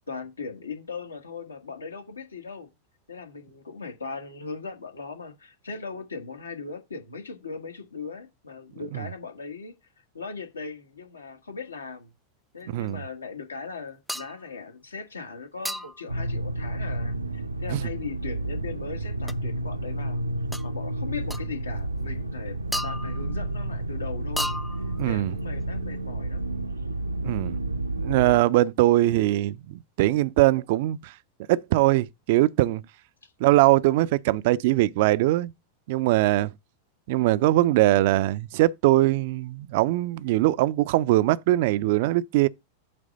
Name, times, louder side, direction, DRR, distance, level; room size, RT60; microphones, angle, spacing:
voice 1, 0.1-2.7 3.1-9.7 10.1-12.1 12.5-20.2 20.6-22.6 22.8-24.5 25.0-26.4 33.2-33.3, left 4 dB, 75° left, 1.7 m, -38 dB
voice 2, 12.7-13.0 17.7-17.8 25.0-25.3 27.2-27.6 28.0-31.1 31.5-32.8 33.4-35.5 35.9-36.5 37.1-42.5, right 16 dB, 50° right, 0.5 m, -21 dB
sound 1, 14.1-14.4 15.7-16.1 19.3-19.4 20.5-20.7 21.3-21.5 22.7-23.4 24.4-25.0, equal, ahead, 0.5 m, -33 dB
sound 2, 16.1-28.4, right 1 dB, 80° right, 0.7 m, -31 dB
8.6 x 3.3 x 6.5 m
figure-of-eight pair, 90°, 0 cm